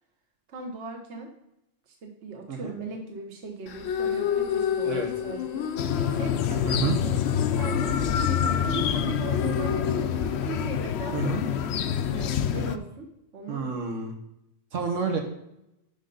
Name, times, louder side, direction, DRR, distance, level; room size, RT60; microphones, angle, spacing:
voice 1, 0.5-1.3 2.0-5.7 6.1-7.1 7.6-11.6 11.9-13.7, right 2 dB, 65° right, 3 dB, 1.4 m, -38 dB
sound 1, 3.7-11.9, left 8 dB, 85° left, 1.1 m, -32 dB
sound 2, 5.8-12.8, left 8 dB, 65° left, 0.8 m, -26 dB
voice 2, 11.1-11.4 13.5-14.1 14.7-15.2, right 5 dB, 80° right, 2 dB, 1.6 m, -29 dB
10.5 x 5.7 x 3.9 m, 0.83 s
omnidirectional pair, 1.3 m